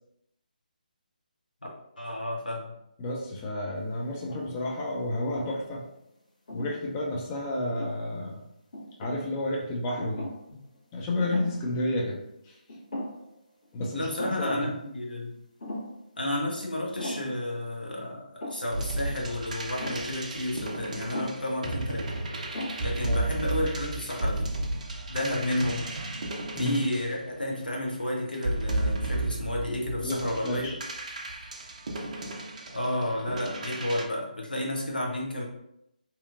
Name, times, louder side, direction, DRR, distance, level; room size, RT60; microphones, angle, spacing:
voice 1, 2.0-2.7 13.9-15.3 16.2-22.1 22.8-24.5 25.1-25.9 26.6-30.7 32.7-35.4, left 1 dB, 80° left, -2 dB, 0.9 m, -31 dB
voice 2, 3.0-5.8 6.5-8.4 9.0-10.2 10.9-12.6 13.7-14.7 23.1-23.3 26.5-26.8 30.0-30.8, left 1 dB, 20° left, -2 dB, 0.5 m, -31 dB
sound 1, 4.1-4.7 5.2-5.9 6.5-6.8 7.6-8.3 8.7-9.3 10.0-10.5 10.7-10.8 11.2-11.7 12.0-12.1 12.7-13.4 13.6-13.7 14.2-14.6 15.6-16.0 17.0-17.4 18.4-18.8 19.8-20.2 21.1-21.5 22.1-22.2 22.5-23.0, left 1 dB, 55° left, 1.2 m, -38 dB
sound 2, 18.7-27.7 28.3-34.0, right 2 dB, 55° right, 0.5 m, -33 dB
2.8 x 2.4 x 2.4 m, 0.81 s
figure-of-eight pair, 150°, 5 cm